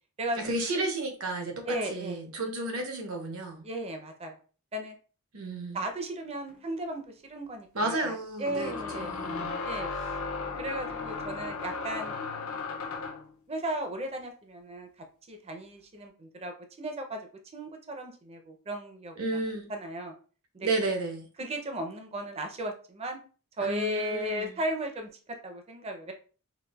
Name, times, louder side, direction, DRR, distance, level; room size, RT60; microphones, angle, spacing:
voice 1, 0.4-3.6 5.3-5.8 7.7-9.6 9.9-10.1 19.2-19.7 20.6-21.3 23.6-24.5, right 2 dB, 70° right, 0.8 m, -32 dB
voice 2, 1.7-2.2 3.6-4.4 4.7-4.9 5.7-9.2 9.6-9.9 10.6-12.2 12.7-14.9 15.3-19.2 19.7-20.1 20.5-20.7 21.4-23.2 23.6-25.1 25.4-26.1, right 1 dB, 30° right, 0.5 m, -36 dB
sound 1, 6.5-6.6 8.5-13.3, left 4 dB, 65° left, 0.5 m, -35 dB
4.0 x 2.5 x 2.3 m
head